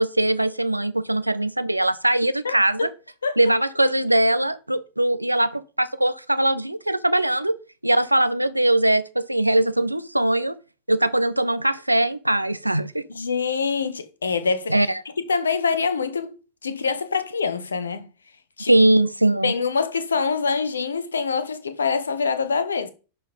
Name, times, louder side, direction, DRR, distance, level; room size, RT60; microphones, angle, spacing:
voice 1, 0.0-2.8 3.4-7.6 7.8-10.5 10.9-13.0 14.7-15.0 18.7-19.5, right 1 dB, 85° right, 0.5 m, -21 dB
voice 2, 2.4-2.9 3.2-3.4 13.1-14.8 15.2-16.3 16.6-18.1 18.6-18.7 19.4-22.9, left 5 dB, 75° left, 0.9 m, -25 dB
11.0 x 4.4 x 5.4 m
figure-of-eight pair, 90°, 0 cm